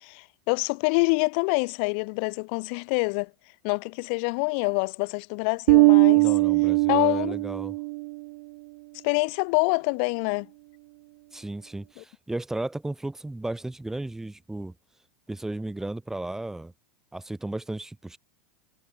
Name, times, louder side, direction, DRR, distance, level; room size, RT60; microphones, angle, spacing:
voice 1, 0.0-3.3 3.6-6.2 6.9-7.4 9.0-10.5 12.0-12.1, left 36 dB, 60° left, 3.3 m, -26 dB
Bass guitar, 5.7-8.1, right 26 dB, 65° right, 0.6 m, -20 dB
voice 2, 6.1-7.8 11.3-14.7 15.3-16.7 17.1-18.2, right 2 dB, 5° right, 7.5 m, -34 dB
supercardioid pair, 120°, 7 cm